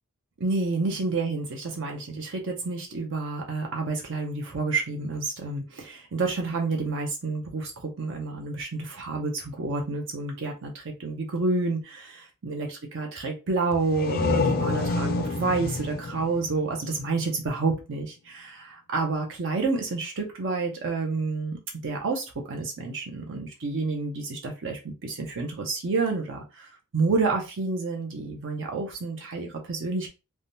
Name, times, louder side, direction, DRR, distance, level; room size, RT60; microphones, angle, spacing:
voice 1, 0.4-30.1, right 3 dB, 55° right, 2 dB, 0.6 m, -29 dB
sound 1, 13.7-17.3, left 3 dB, 45° left, 0.4 m, -28 dB
3.4 x 2.1 x 2.6 m, 0.29 s
head